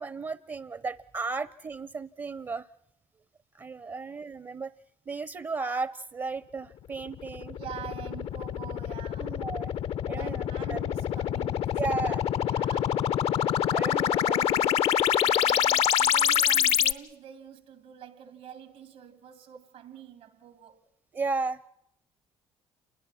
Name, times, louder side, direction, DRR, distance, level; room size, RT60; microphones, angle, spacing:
voice 1, 0.0-2.7 3.5-4.7 5.1-7.6 9.2-9.7 10.1-10.8 11.8-12.3 13.7-14.8 21.1-21.7, right 4 dB, 30° right, 0.8 m, -34 dB
sound 1, 7.1-16.9, left 9 dB, 65° left, 0.8 m, -26 dB
voice 2, 7.2-9.4 10.1-13.0 15.2-20.8, right 9 dB, 75° right, 2.6 m, -46 dB
28.5 x 22.0 x 5.8 m
supercardioid pair, 75°, 11 cm